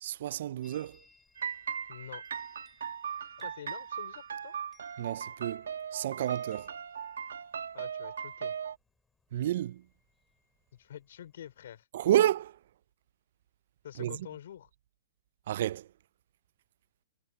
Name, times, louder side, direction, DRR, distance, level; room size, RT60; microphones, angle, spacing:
voice 1, 0.0-1.0 5.0-6.7 9.3-9.8 11.9-12.6 14.0-14.2 15.5-15.9, right 12 dB, 60° right, 0.4 m, -30 dB
Chime, 0.6-11.8, left 3 dB, 5° left, 5.9 m, -67 dB
sound 1, 1.4-8.8, right 7 dB, 85° right, 1.5 m, -38 dB
voice 2, 1.9-2.2 3.4-4.5 7.7-8.5 10.7-11.9 13.8-14.7, left 10 dB, 65° left, 3.7 m, -47 dB
hypercardioid pair, 150°, 0 cm